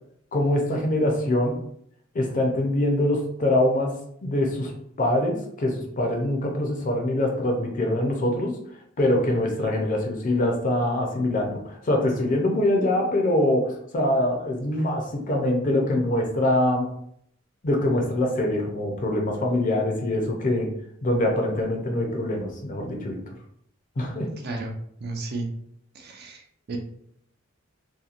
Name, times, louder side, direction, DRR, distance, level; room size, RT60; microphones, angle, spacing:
voice 1, 0.3-1.6 2.1-3.9 4.2-4.7 5.0-8.6 9.0-16.9 17.6-20.7 21.0-23.2 24.0-24.3, left 1 dB, 40° left, 1 dB, 0.5 m, -24 dB
voice 2, 24.4-24.7 25.0-25.5 25.9-26.8, right 3 dB, 55° right, 2 dB, 0.5 m, -33 dB
2.8 x 2.2 x 2.4 m, 0.70 s
head